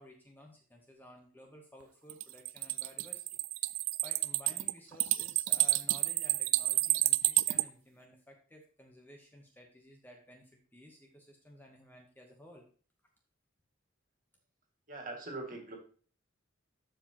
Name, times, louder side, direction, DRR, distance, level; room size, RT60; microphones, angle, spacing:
voice 1, 0.0-3.2 3.6-3.8 4.0-12.6, equal, 10° left, 1 dB, 0.9 m, -55 dB
sound 1, 2.1-7.6, right 18 dB, 75° right, 0.4 m, -29 dB
voice 2, 14.9-15.8, right 2 dB, 40° right, 2 dB, 2.0 m, -41 dB
12.5 x 4.9 x 2.9 m, 0.42 s
head